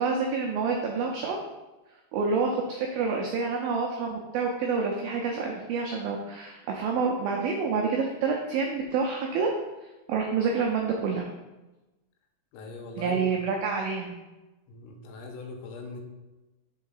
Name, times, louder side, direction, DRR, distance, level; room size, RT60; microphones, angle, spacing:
voice 1, 0.0-1.4 2.1-9.5 10.1-11.3 13.0-14.1, right 5 dB, 90° right, 1 dB, 2.0 m, -28 dB
voice 2, 12.5-13.4 14.7-16.0, left 2 dB, 85° left, 3 dB, 3.1 m, -40 dB
5.7 x 4.6 x 5.5 m, 1.1 s
omnidirectional pair, 5.0 m